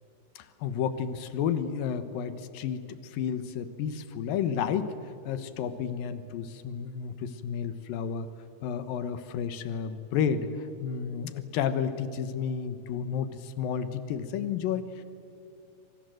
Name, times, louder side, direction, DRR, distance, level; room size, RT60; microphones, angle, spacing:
voice 1, 0.4-4.9 5.3-8.3 8.6-10.5 10.8-15.0, left 7 dB, 85° left, 11 dB, 3.0 m, -31 dB
27.0 x 24.5 x 7.8 m, 2.5 s
omnidirectional pair, 3.9 m